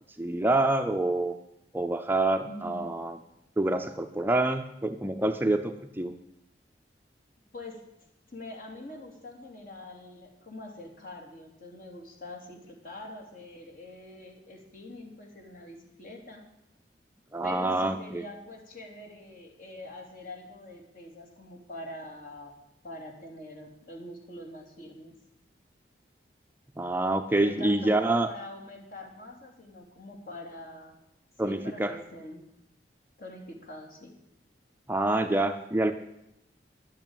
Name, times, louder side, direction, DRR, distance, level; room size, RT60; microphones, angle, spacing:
voice 1, 0.2-1.3 1.7-3.2 3.6-6.1 17.3-18.2 26.8-28.3 31.4-32.0 34.9-35.9, right 2 dB, 10° right, 6 dB, 0.6 m, -27 dB
voice 2, 2.4-3.0 7.5-7.8 8.3-16.5 17.4-22.6 22.8-25.2 27.4-31.0 31.4-32.4 33.2-34.1, left 1 dB, 50° left, 2 dB, 3.0 m, -44 dB
11.5 x 8.7 x 9.0 m, 0.81 s
head